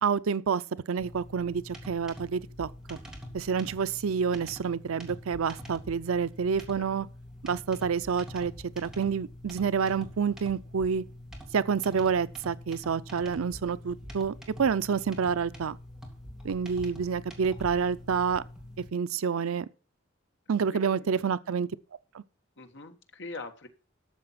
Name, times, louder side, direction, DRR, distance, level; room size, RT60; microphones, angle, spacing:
voice 1, 0.0-0.6 0.9-2.7 3.3-7.1 7.4-11.0 11.5-15.8 16.4-18.4 18.9-19.7 20.5-21.7 22.1-22.2, right 6 dB, 90° right, 0.5 m, -28 dB
sound 1, 1.0-18.9, left 1 dB, 5° right, 2.4 m, -45 dB
voice 2, 20.7-21.3 22.6-23.7, left 3 dB, 60° left, 1.6 m, -43 dB
13.0 x 7.0 x 5.7 m
head